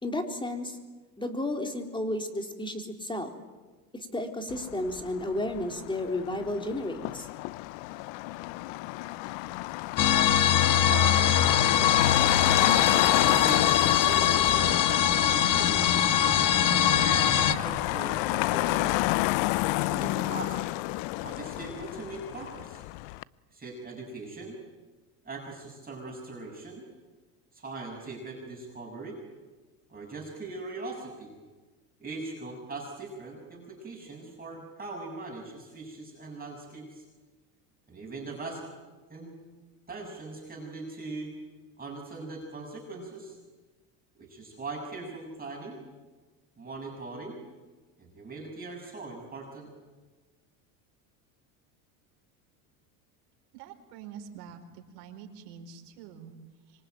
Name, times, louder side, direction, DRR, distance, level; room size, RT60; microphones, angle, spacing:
voice 1, 0.0-0.8 1.2-3.3 3.9-7.3, left 1 dB, 10° left, 5 dB, 3.9 m, -32 dB
Motor vehicle (road), 4.5-23.2, left 20 dB, 65° left, 0.8 m, -30 dB
sound 1, 10.0-17.5, left 9 dB, 40° left, 1.6 m, -22 dB
voice 2, 10.8-11.8 12.7-16.1 16.9-18.9 19.7-20.8 21.2-22.8 23.5-24.6 25.2-26.8 27.5-29.2 29.9-31.3 32.0-37.1 37.9-38.7 39.1-39.4 39.9-41.3 41.8-43.4 44.2-45.8 46.6-47.4 48.0-49.7, right 3 dB, 20° right, -1 dB, 6.9 m, -40 dB
voice 3, 53.5-56.3, right 7 dB, 75° right, 4 dB, 5.0 m, -46 dB
26.0 x 24.0 x 9.3 m, 1.3 s
supercardioid pair, 105°, 46 cm